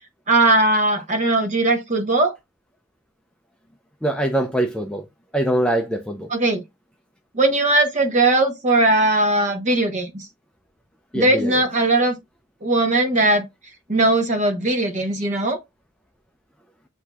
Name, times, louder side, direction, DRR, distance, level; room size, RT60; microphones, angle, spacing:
voice 1, 0.3-2.3 6.3-6.6 7.3-10.2 11.1-12.1 12.6-13.4 13.9-15.6, right 2 dB, 35° right, 0.9 m, -19 dB
voice 2, 4.0-5.0 5.3-6.3 11.1-11.5, right 1 dB, 5° left, 0.4 m, -23 dB
7.7 x 2.7 x 2.3 m
head